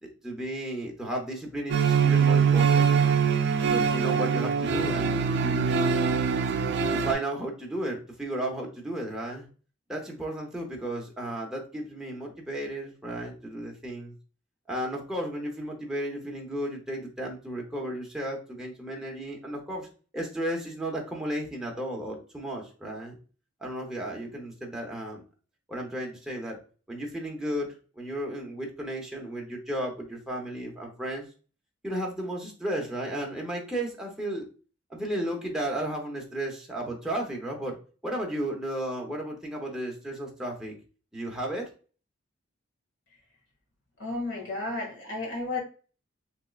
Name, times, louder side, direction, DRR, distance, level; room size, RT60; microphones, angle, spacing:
voice 1, 0.0-3.2 3.6-5.7 6.9-9.5 9.9-14.1 14.7-19.9 20.1-23.2 23.6-25.2 25.7-26.6 26.9-31.3 31.8-34.5 34.9-37.8 38.0-40.8 41.1-41.7, right 1 dB, 5° right, -1 dB, 0.7 m, -34 dB
sound 1, 1.7-7.1, right 6 dB, 55° right, 0.4 m, -23 dB
voice 2, 44.0-45.6, left 2 dB, 65° left, -1 dB, 1.5 m, -32 dB
3.6 x 3.0 x 2.4 m, 0.37 s
head